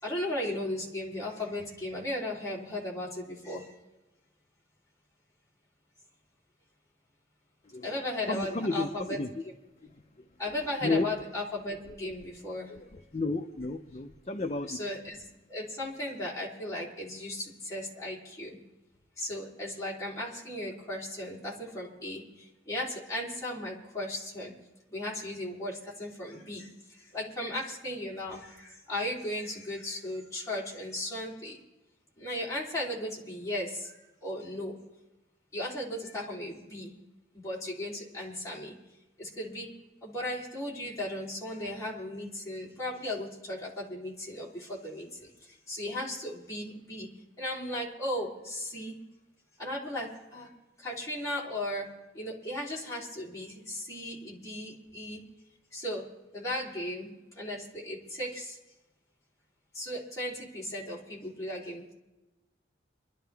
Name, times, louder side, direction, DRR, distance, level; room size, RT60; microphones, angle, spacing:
voice 1, 0.0-3.8 7.8-9.2 9.4-9.5 10.4-12.7 14.7-15.2 15.5-18.6 19.2-24.5 24.9-31.6 32.2-34.8 35.5-36.9 37.3-38.8 39.2-39.7 40.0-47.1 47.4-48.9 49.6-50.5 50.8-51.9 52.1-55.2 55.7-56.1 56.3-58.6 59.7-61.9, left 1 dB, 15° left, -5 dB, 3.3 m, -36 dB
voice 2, 7.6-8.0 8.3-9.4 9.8-9.9 10.8-11.1 11.9-12.0 12.7-14.8, left 3 dB, 35° left, 5 dB, 0.6 m, -32 dB
24.5 x 12.0 x 3.4 m, 1.1 s
head